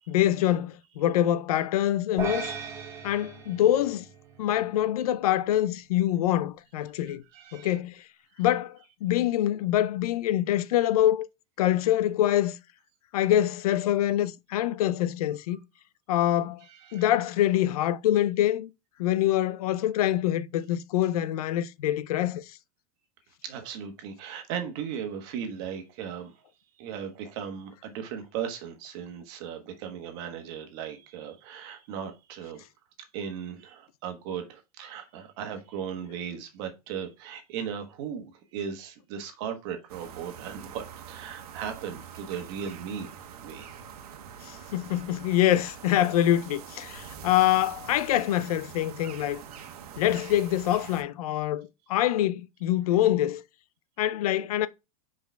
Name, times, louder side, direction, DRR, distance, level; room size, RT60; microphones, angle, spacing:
voice 1, 0.1-2.5 3.0-4.1 4.4-7.2 7.5-8.0 8.4-11.3 11.6-12.6 13.1-15.6 16.1-16.6 16.9-18.7 19.0-22.4 44.4-49.4 50.0-53.4 54.0-54.7, left 12 dB, 80° left, 0.6 m, -25 dB
sound 1, 2.2-4.7, right 5 dB, 15° right, 0.9 m, -37 dB
voice 2, 7.3-7.7 16.7-17.1 23.4-26.4 26.8-32.7 33.1-43.1 43.4-43.7, right 8 dB, 40° right, 1.3 m, -37 dB
sound 2, 39.9-51.0, right 8 dB, 85° right, 1.2 m, -45 dB
4.9 x 4.5 x 4.5 m
supercardioid pair, 175°, 19 cm